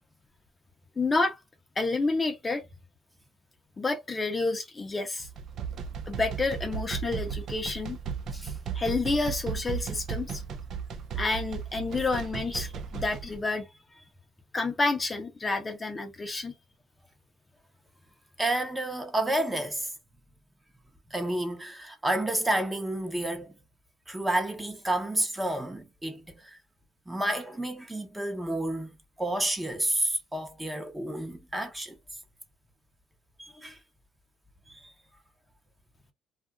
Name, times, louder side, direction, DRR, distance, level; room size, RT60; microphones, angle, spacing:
voice 1, 1.0-1.4 1.8-2.6 3.8-5.3 6.1-8.0 8.7-10.4 11.2-13.7 14.5-16.5, left 3 dB, 25° left, 0.7 m, -29 dB
sound 1, 5.2-13.4, right 7 dB, 60° right, 0.5 m, -35 dB
voice 2, 18.4-19.9 21.1-23.5 24.1-26.6 27.1-32.0 33.4-33.8 34.7-34.9, right 1 dB, 10° right, 0.9 m, -30 dB
2.8 x 2.4 x 2.2 m
supercardioid pair, 90°, 0 cm